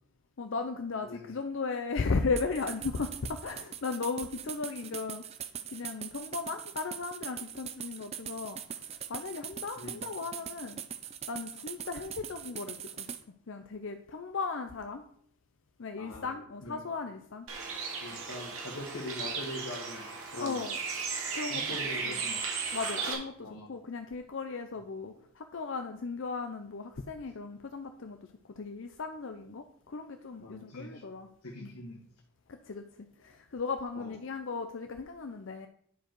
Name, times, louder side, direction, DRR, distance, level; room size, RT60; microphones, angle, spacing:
voice 1, 0.4-5.3 5.7-10.8 11.3-13.1 13.5-15.0 15.8-17.5 20.4-20.8 21.3-21.8 22.0-22.2 22.7-28.2 28.5-31.3 31.6-31.7 32.5-32.8 33.2-35.7, left 4 dB, 55° left, 6 dB, 0.5 m, -36 dB
voice 2, 1.0-1.4 9.8-10.1 16.0-16.3 16.6-16.8 18.0-20.6 21.5-22.4 23.4-23.8 30.4-31.0 31.4-32.0 34.0-34.1, left 1 dB, 75° left, -2 dB, 1.6 m, -42 dB
sound 1, 2.4-13.2, right 8 dB, 25° right, 0.4 m, -42 dB
Bird, 17.5-23.1, right 5 dB, 70° right, 2.1 m, -36 dB
10.0 x 4.7 x 4.6 m, 0.63 s
head